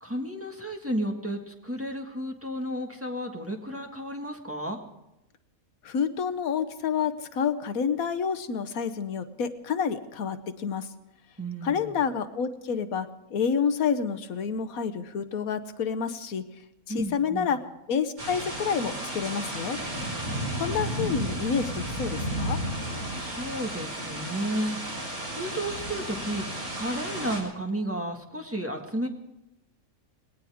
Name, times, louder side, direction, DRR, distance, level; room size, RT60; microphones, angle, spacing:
voice 1, 0.0-4.8 11.4-12.0 16.9-17.5 23.1-24.8 25.3-26.5 26.7-29.1, right 1 dB, 10° right, 1 dB, 1.7 m, -32 dB
voice 2, 5.8-10.9 11.6-16.4 16.9-17.6 17.9-19.8 20.6-22.6, left 6 dB, 80° left, 10 dB, 1.4 m, -29 dB
sound 1, 18.2-27.4, right 1 dB, 85° right, 5.3 m, -33 dB
21.0 x 18.0 x 3.6 m, 0.91 s
omnidirectional pair, 1.5 m